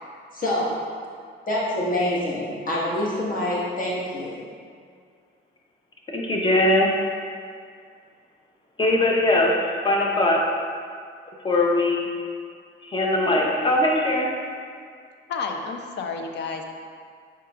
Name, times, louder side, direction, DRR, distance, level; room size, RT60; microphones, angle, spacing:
voice 1, 0.3-0.7 1.5-4.4, left 1 dB, 45° left, -6 dB, 1.4 m, -26 dB
voice 2, 6.1-6.9 8.8-9.6 9.8-10.4 11.4-12.1 12.8-14.3, left 1 dB, 25° left, -1 dB, 0.7 m, -20 dB
voice 3, 15.3-16.6, left 4 dB, 60° left, 4 dB, 0.5 m, -30 dB
4.7 x 4.7 x 2.4 m, 2.2 s
cardioid pair, 90°, 20 cm